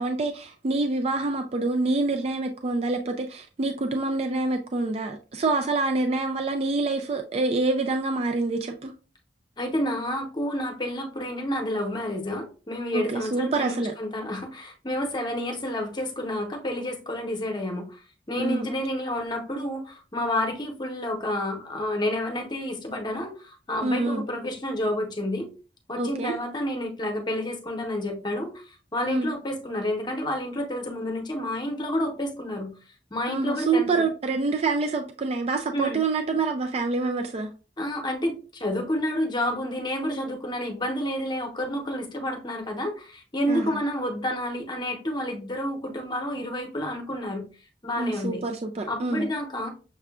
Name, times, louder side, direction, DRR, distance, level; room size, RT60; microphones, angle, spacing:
voice 1, 0.0-8.9 12.9-13.9 18.4-18.7 23.8-24.2 26.0-26.3 29.1-29.3 33.3-37.5 43.5-43.8 48.0-49.3, right 3 dB, 35° right, 0.4 m, -26 dB
voice 2, 9.6-25.5 25.9-32.7 33.1-34.0 35.7-36.0 37.8-47.4 47.8-48.4 48.9-49.7, left 1 dB, 25° left, 0.9 m, -30 dB
6.6 x 2.4 x 2.3 m
head